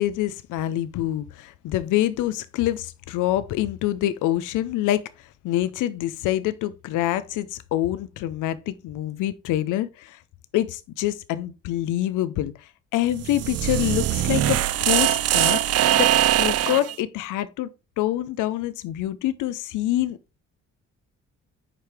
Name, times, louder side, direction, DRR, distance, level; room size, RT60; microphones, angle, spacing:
voice 1, 0.0-10.2 10.5-16.1 16.4-17.7 18.0-20.4, left 13 dB, 85° left, 0.5 m, -26 dB
sound 1, 13.1-16.9, right 12 dB, 55° right, 0.4 m, -21 dB
7.4 x 4.9 x 3.4 m
cardioid pair, 90°, 30 cm